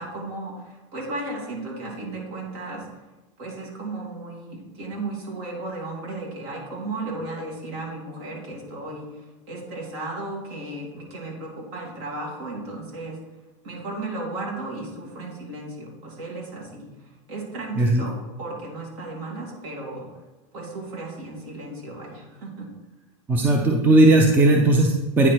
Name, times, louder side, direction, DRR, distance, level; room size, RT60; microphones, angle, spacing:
voice 1, 0.0-2.9 3.4-13.2 13.6-20.1 20.5-22.7, right 2 dB, 55° right, -2 dB, 2.6 m, -35 dB
voice 2, 23.3-25.3, right 2 dB, 10° right, 1 dB, 0.5 m, -17 dB
9.1 x 4.4 x 4.5 m, 1.1 s
supercardioid pair, 170°, 16 cm